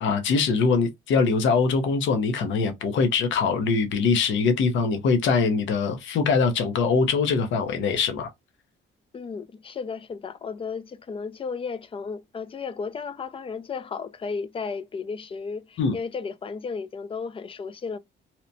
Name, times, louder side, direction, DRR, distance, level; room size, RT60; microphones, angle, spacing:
voice 1, 0.0-8.3 15.8-16.0, left 4 dB, 70° left, 0.6 m, -23 dB
voice 2, 9.1-18.0, left 5 dB, 30° left, 0.4 m, -34 dB
2.8 x 2.1 x 2.5 m
cardioid pair, 90°, 20 cm